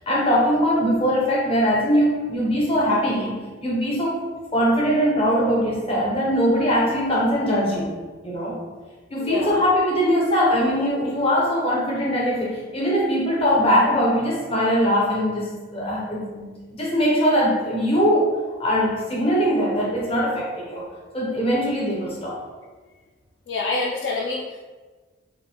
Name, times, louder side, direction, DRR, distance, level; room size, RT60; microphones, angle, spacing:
voice 1, 0.1-3.4 3.6-4.2 4.5-7.9 8.2-8.6 9.1-20.9 21.1-22.4, equal, 30° left, -4 dB, 0.8 m, -21 dB
voice 2, 9.2-9.5 23.5-24.6, left 3 dB, 60° left, -2 dB, 0.3 m, -26 dB
3.9 x 2.5 x 2.8 m, 1.4 s
head